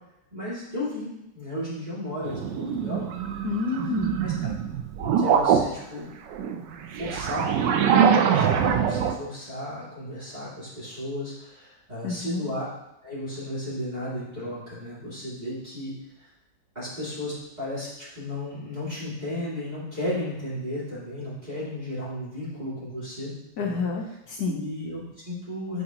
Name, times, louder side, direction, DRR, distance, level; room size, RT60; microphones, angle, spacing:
voice 1, 0.3-1.1 1.3-3.0 4.2-4.5 5.0-6.1 7.0-7.4 7.7-12.7 13.0-15.9 16.7-17.9 18.1-23.3 23.6-23.8 24.4-25.8, left 1 dB, 25° right, -10 dB, 2.7 m, -34 dB
sound 1, 2.2-5.7 6.3-9.1, right 7 dB, 85° right, 1.3 m, -23 dB
voice 2, 3.4-4.2 12.0-12.5 23.6-24.6, left 4 dB, 65° left, 1 dB, 1.2 m, -29 dB
9.6 x 5.3 x 3.0 m, 0.88 s
omnidirectional pair, 1.9 m